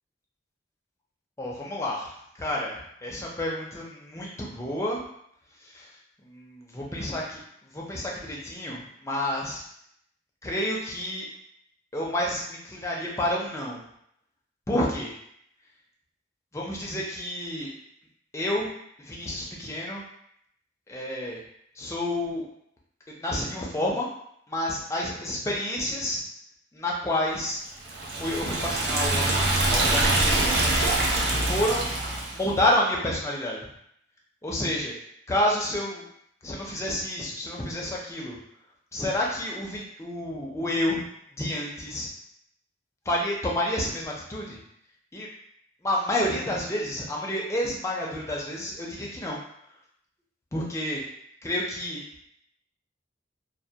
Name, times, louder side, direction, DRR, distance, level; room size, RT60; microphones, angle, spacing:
voice 1, 1.4-5.0 5.6-9.6 10.4-11.3 11.9-13.8 14.7-15.1 16.5-17.7 18.3-18.7 19.0-20.0 20.9-21.4 21.7-22.5 23.1-24.1 24.5-26.2 26.7-27.6 28.0-29.3 29.7-30.5 31.2-31.9 32.3-33.7 34.4-34.9 35.3-36.0 36.4-38.4 38.9-41.0 41.4-42.1 43.1-44.6 45.1-45.3 45.8-49.4 50.5-51.0 51.4-52.0, left 1 dB, 15° left, -3 dB, 0.4 m, -29 dB
Liquid, 27.8-32.5, right 2 dB, 60° right, 0.5 m, -24 dB
2.2 x 2.1 x 2.7 m, 0.71 s
head